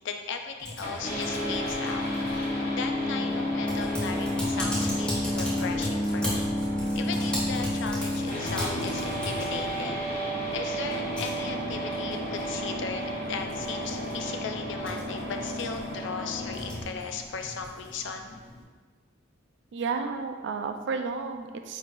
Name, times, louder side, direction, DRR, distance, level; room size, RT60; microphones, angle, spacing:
voice 1, 0.0-6.5 7.0-10.1 10.5-18.4, left 5 dB, 60° left, 5 dB, 0.4 m, -37 dB
Typing, 0.6-18.6, left 1 dB, 5° left, 1.3 m, -39 dB
sound 1, 0.8-16.8, equal, 30° left, 0.8 m, -31 dB
voice 2, 19.7-21.8, right 4 dB, 60° right, 6 dB, 0.3 m, -32 dB
5.1 x 3.1 x 2.6 m, 1.4 s
head